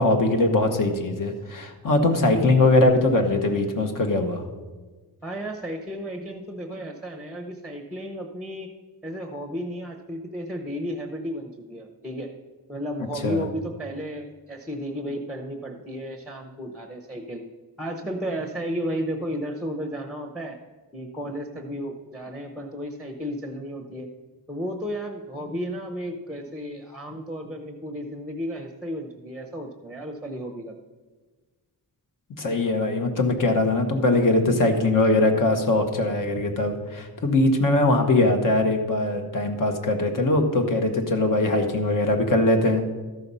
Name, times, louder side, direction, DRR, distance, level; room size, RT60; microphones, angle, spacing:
voice 1, 0.0-4.4 13.2-13.4 32.4-42.9, left 2 dB, 55° left, 5 dB, 1.3 m, -21 dB
voice 2, 5.2-8.7 9.0-12.3 12.7-17.4 17.8-20.6 20.9-24.1 24.5-30.7, equal, ahead, 3 dB, 0.7 m, -33 dB
13.0 x 5.7 x 5.5 m, 1.3 s
wide cardioid pair, 140°, 37 cm